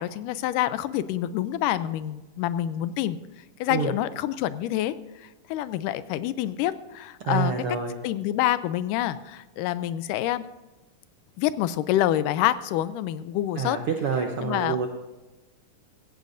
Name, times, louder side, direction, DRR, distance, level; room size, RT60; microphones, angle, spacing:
voice 1, 0.0-3.2 3.6-4.9 5.2-7.5 8.0-10.5 11.4-13.8 14.4-14.8, left 13 dB, 90° left, 14 dB, 2.2 m, -27 dB
voice 2, 7.3-8.0 13.6-14.9, right 5 dB, 75° right, 3 dB, 1.3 m, -27 dB
16.0 x 15.0 x 2.6 m, 1.1 s
omnidirectional pair, 3.7 m